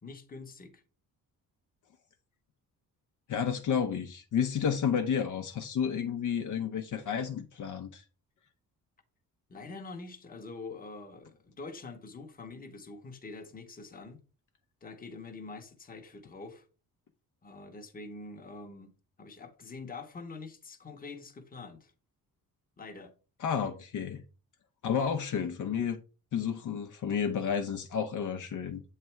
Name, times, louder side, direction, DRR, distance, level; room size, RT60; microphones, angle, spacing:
voice 1, 0.0-0.8 9.5-14.2 14.8-16.7 17.4-21.9 22.8-23.1, left 3 dB, 25° left, 0.9 m, -45 dB
voice 2, 3.3-8.0 23.4-24.2 24.8-26.0 26.3-28.8, left 7 dB, 55° left, 0.7 m, -31 dB
7.8 x 3.3 x 4.4 m
cardioid pair, 135°, 36 cm